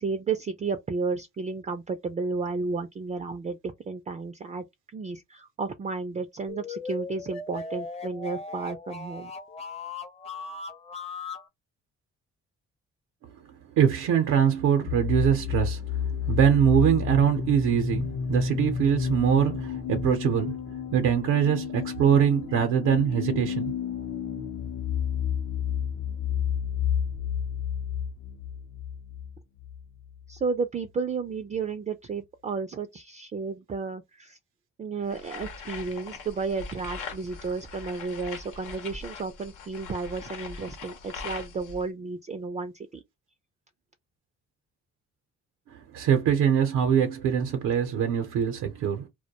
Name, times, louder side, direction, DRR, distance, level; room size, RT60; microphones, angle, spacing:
voice 1, 0.0-3.6 3.9-4.6 4.9-9.3 30.3-34.4 34.8-43.0, right 4 dB, 25° right, 0.4 m, -32 dB
sound 1, 6.5-11.5, left 4 dB, 20° left, 0.6 m, -38 dB
voice 2, 13.7-23.7 24.4-24.5 45.7-49.1, right 8 dB, 90° right, 0.6 m, -23 dB
sound 2, 14.9-30.4, left 8 dB, 60° left, 0.6 m, -31 dB
sound 3, 35.1-41.8, left 4 dB, 90° left, 0.9 m, -41 dB
2.2 x 2.1 x 2.8 m
cardioid pair, 90°, 30 cm